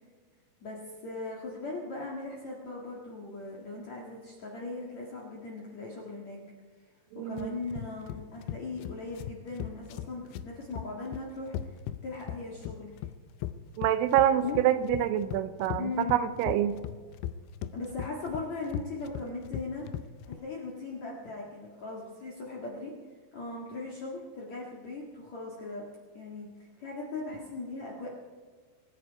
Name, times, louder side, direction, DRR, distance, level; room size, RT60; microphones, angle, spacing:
voice 1, 0.6-6.4 7.1-11.5 12.0-13.0 14.4-14.6 15.8-16.4 17.7-19.8 20.2-22.9 23.3-25.8 26.1-26.5 26.8-28.1, left 3 dB, 55° left, -3 dB, 2.0 m, -39 dB
voice 2, 7.1-7.6 13.8-16.7, right 11 dB, 80° right, 11 dB, 3.1 m, -26 dB
sound 1, 7.4-20.4, left 11 dB, 90° left, 2.5 m, -38 dB
24.5 x 9.8 x 4.7 m, 1.5 s
omnidirectional pair, 6.0 m